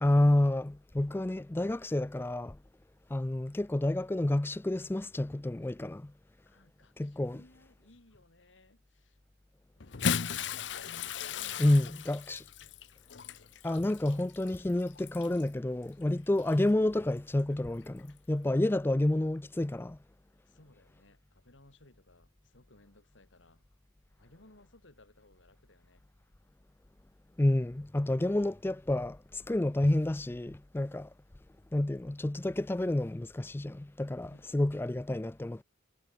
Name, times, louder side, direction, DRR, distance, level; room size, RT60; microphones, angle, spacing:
voice 1, 0.0-2.6 3.1-6.1 7.0-7.4 11.6-12.4 13.6-20.0 27.4-31.1 31.7-35.6, left 1 dB, 10° left, 0.4 m, -29 dB
voice 2, 6.4-9.2 11.3-12.2 20.3-23.7 24.2-26.0 34.3-35.0, left 2 dB, 85° left, 3.1 m, -61 dB
Bathtub (filling or washing) / Splash splatter, 9.8-15.5 16.4-16.6 18.0-18.1, left 7 dB, 70° left, 0.8 m, -36 dB
head